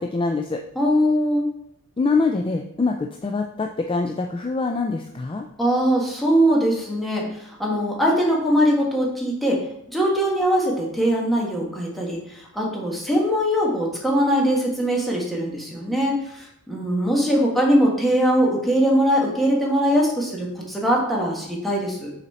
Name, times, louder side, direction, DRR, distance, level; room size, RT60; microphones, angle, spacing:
voice 1, 0.0-0.6 2.0-5.5, left 3 dB, 25° left, 3 dB, 0.3 m, -24 dB
voice 2, 0.7-1.5 5.6-9.6 9.9-22.1, equal, ahead, -3 dB, 1.5 m, -21 dB
6.8 x 4.2 x 4.2 m, 0.75 s
head